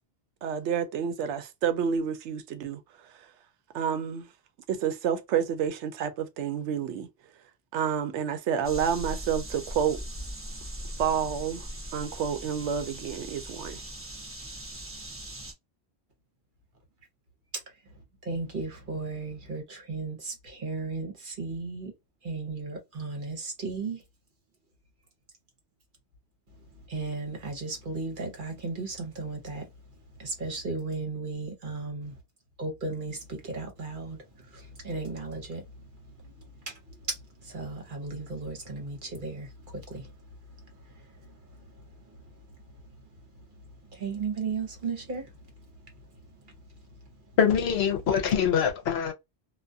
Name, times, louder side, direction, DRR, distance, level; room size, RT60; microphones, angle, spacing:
voice 1, 0.4-2.8 3.7-4.3 4.7-7.1 7.7-10.0 11.0-11.7 11.9-13.8, right 8 dB, 90° right, 0.9 m, -29 dB
sound 1, 8.6-15.5, right 1 dB, 15° right, 0.5 m, -39 dB
voice 2, 18.2-21.9 22.2-24.0 26.9-29.6 30.2-32.1 32.6-34.2 34.8-35.6 37.5-39.5 39.9-40.0 44.0-45.2, right 4 dB, 50° right, 1.0 m, -35 dB
voice 3, 47.4-49.1, left 7 dB, 70° left, 0.9 m, -24 dB
2.3 x 2.3 x 2.5 m
omnidirectional pair, 1.1 m